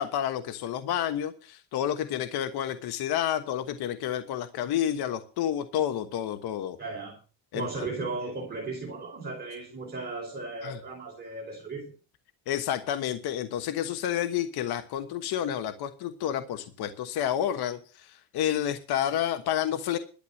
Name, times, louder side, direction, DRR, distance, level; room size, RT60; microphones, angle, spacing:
voice 1, 0.0-6.8 7.5-7.9 10.6-10.8 12.5-20.0, left 10 dB, 50° left, 9 dB, 1.3 m, -30 dB
voice 2, 6.8-7.2 7.5-11.9, right 3 dB, 20° right, -1 dB, 4.7 m, -36 dB
12.0 x 8.0 x 7.2 m, 0.36 s
cardioid pair, 145°, 47 cm